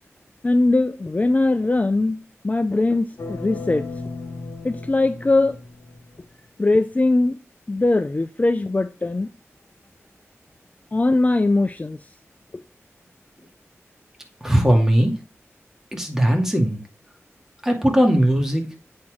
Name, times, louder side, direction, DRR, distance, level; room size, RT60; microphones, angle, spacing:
voice 1, 0.4-2.2 2.4-3.8 4.6-5.6 6.6-7.4 7.7-9.3 10.9-12.0, left 2 dB, 30° left, 0.5 m, -20 dB
sound 1, 3.2-6.2, left 3 dB, 75° left, 1.4 m, -35 dB
voice 2, 14.4-15.2 15.9-16.8 17.6-18.8, equal, 10° right, 2.2 m, -19 dB
8.4 x 4.5 x 4.9 m
wide cardioid pair, 65°, 5 cm